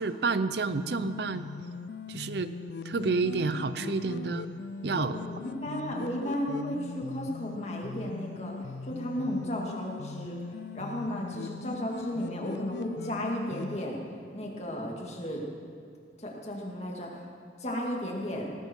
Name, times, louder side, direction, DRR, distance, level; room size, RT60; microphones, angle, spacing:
voice 1, 0.0-1.5 2.1-2.5 2.8-4.5 4.8-5.3, right 4 dB, 65° right, 12 dB, 0.6 m, -29 dB
sound 1, 0.7-13.8, left 5 dB, 70° left, 0.4 m, -40 dB
voice 2, 4.9-8.6 8.9-10.4 10.7-14.0 14.3-15.4 16.2-17.2 17.6-18.5, equal, 35° left, -1 dB, 2.3 m, -34 dB
18.0 x 15.0 x 4.6 m, 2.3 s
head